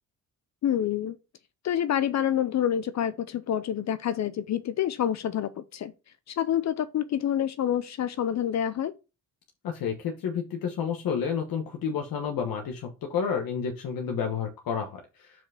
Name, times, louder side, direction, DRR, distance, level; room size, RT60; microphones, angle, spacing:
voice 1, 0.6-1.2 1.6-5.9 6.3-8.9, left 10 dB, 50° left, 0.6 m, -27 dB
voice 2, 9.6-15.5, left 7 dB, 80° left, 1.3 m, -30 dB
5.7 x 4.9 x 4.9 m
cardioid pair, 120°, 34 cm